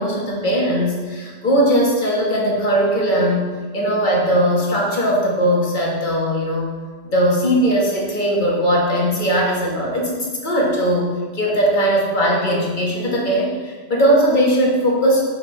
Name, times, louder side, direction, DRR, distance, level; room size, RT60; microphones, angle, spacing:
voice 1, 0.0-6.7 7.0-11.1 11.3-15.2, equal, 50° left, -3 dB, 1.6 m, -19 dB
7.0 x 5.3 x 4.2 m, 1.5 s
omnidirectional pair, 1.1 m